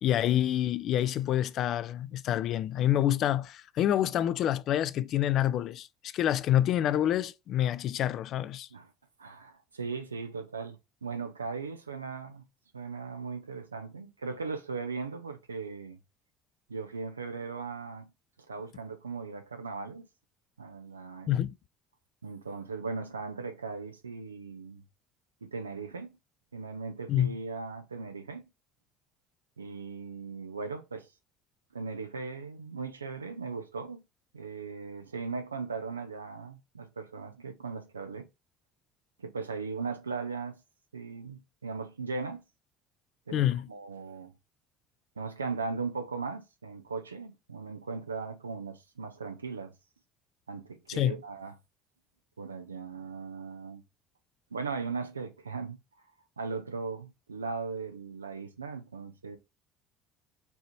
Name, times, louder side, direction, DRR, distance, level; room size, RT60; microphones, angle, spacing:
voice 1, 0.0-5.9 6.1-8.7 21.3-21.5 27.1-27.3 43.3-43.7 50.9-51.2, left 11 dB, 55° left, 0.3 m, -27 dB
voice 2, 9.2-12.4 12.7-16.0 16.7-18.1 18.5-20.0 20.6-21.3 22.2-24.8 25.4-26.2 26.5-28.5 29.6-31.1 31.7-34.0 34.3-38.3 39.2-40.6 40.9-42.4 43.3-44.3 45.2-49.7 50.5-51.5 52.4-53.8 54.5-55.8 56.4-59.4, right 4 dB, 90° right, 0.5 m, -38 dB
5.5 x 2.8 x 2.8 m
figure-of-eight pair, 60°, 0 cm